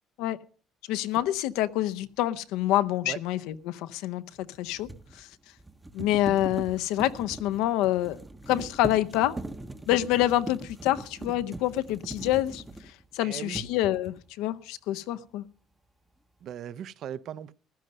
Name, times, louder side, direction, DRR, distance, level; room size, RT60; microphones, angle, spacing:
voice 1, 0.9-4.2 4.6-4.9 5.2-5.3 5.9-8.2 8.5-9.3 9.9-12.6 13.1-15.4, left 14 dB, 90° left, 0.6 m, -27 dB
sound 1, 1.1-1.3 4.4-13.1 13.5-14.3, right 2 dB, 10° right, 0.7 m, -41 dB
voice 2, 13.2-13.6 16.4-17.5, right 9 dB, 50° right, 0.5 m, -38 dB
15.0 x 12.0 x 5.3 m
cardioid pair, 155°, 0 cm